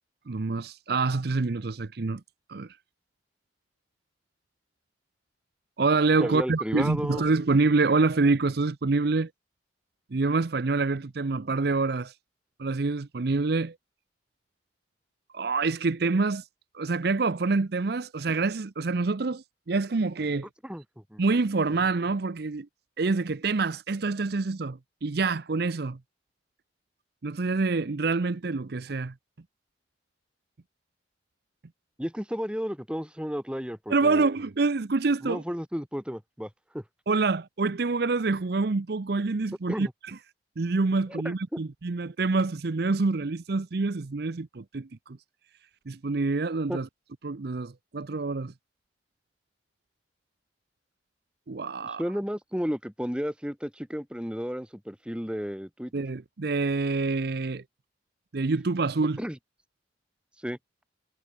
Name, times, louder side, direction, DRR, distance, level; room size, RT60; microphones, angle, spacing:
voice 1, 0.3-2.2 2.5-2.7 5.8-9.3 10.1-12.1 12.6-13.8 15.3-16.5 16.7-20.5 21.2-22.7 23.0-26.0 27.2-29.1 33.9-35.4 37.1-40.2 40.6-45.2 45.9-46.9 47.2-48.5 51.5-52.0 55.9-57.6 58.3-59.2, right 3 dB, 60° right, 0.6 m, -26 dB
voice 2, 6.2-7.2 20.6-21.2 32.0-34.3 35.2-36.8 39.7-39.9 41.1-41.6 46.7-46.8 51.8-55.9 59.2-59.4 60.4-60.6, equal, 5° right, 4.4 m, -33 dB
head